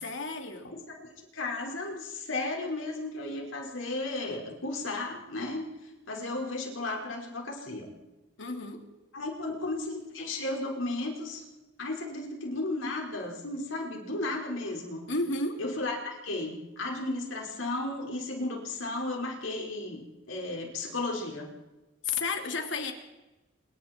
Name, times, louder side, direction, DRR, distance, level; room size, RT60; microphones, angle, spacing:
voice 1, 0.0-0.7 8.4-8.8 15.1-15.6 22.0-22.9, left 3 dB, 65° left, 4 dB, 3.1 m, -32 dB
voice 2, 0.6-5.6 6.1-7.9 9.1-11.4 11.8-15.0 15.6-21.5, left 2 dB, 85° left, 0 dB, 5.2 m, -34 dB
27.0 x 23.0 x 4.6 m, 1.1 s
head